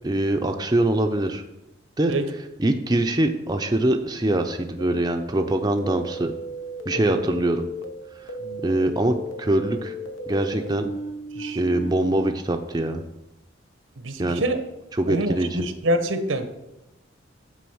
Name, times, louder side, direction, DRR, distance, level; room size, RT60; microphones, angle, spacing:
voice 1, 0.0-1.4 2.0-2.1 2.6-6.3 6.9-7.7 8.6-9.9 10.3-10.9 11.6-13.0 14.2-14.4 14.9-15.6, right 1 dB, 20° right, 5 dB, 0.5 m, -23 dB
sound 1, 4.8-12.3, equal, 85° left, 1.1 m, -35 dB
voice 2, 8.4-8.8 11.3-11.6 14.0-14.6 15.1-16.5, right 1 dB, 85° right, 8 dB, 1.0 m, -26 dB
9.4 x 3.9 x 7.0 m, 0.93 s
head